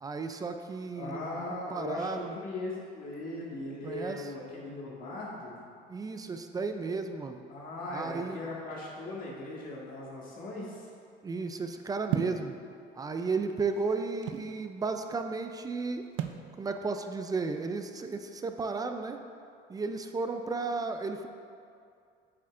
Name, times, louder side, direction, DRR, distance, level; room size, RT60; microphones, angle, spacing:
voice 1, 0.0-1.2 1.7-2.3 3.8-4.2 5.9-7.4 7.9-8.4 11.2-12.5 12.9-16.0 16.6-19.2 19.7-21.3, right 4 dB, 20° right, 7 dB, 0.4 m, -33 dB
voice 2, 1.0-5.5 7.5-10.9, left 2 dB, 45° left, -5 dB, 1.9 m, -39 dB
sound 1, 12.1-12.5 13.3-14.5 16.2-16.5, right 10 dB, 80° right, 0.5 m, -33 dB
8.6 x 7.7 x 2.5 m, 2.4 s
cardioid pair, 120°, 19 cm